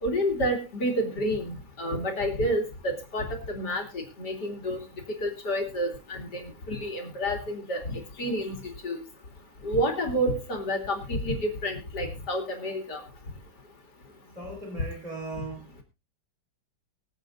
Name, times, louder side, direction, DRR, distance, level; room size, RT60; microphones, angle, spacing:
voice 1, 0.0-3.8 4.2-4.8 5.2-6.4 6.7-7.8 8.2-9.0 9.6-13.0, equal, 60° left, 4 dB, 3.3 m, -29 dB
voice 2, 14.0-15.8, right 2 dB, 20° right, -1 dB, 3.8 m, -39 dB
24.0 x 8.3 x 2.5 m, 0.27 s
omnidirectional pair, 2.0 m